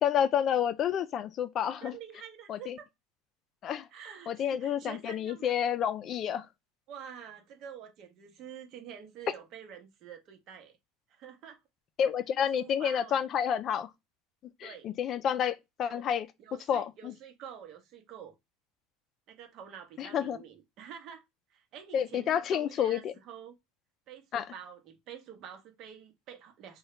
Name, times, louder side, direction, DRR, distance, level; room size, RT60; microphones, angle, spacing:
voice 1, 0.0-2.0 2.5-2.8 3.6-3.9 4.3-6.5 12.0-13.9 14.6-16.3 16.7-17.1 20.0-20.4 21.9-23.1 24.3-24.4, left 9 dB, 45° left, 0.4 m, -29 dB
voice 2, 1.8-2.9 3.9-5.5 6.9-10.8 11.1-11.6 12.5-13.2 14.6-14.9 15.8-16.0 16.4-18.3 19.3-21.2 21.5-23.5 24.1-26.8, right 8 dB, 55° right, 0.8 m, -47 dB
2.8 x 2.2 x 3.1 m
supercardioid pair, 100°, 0 cm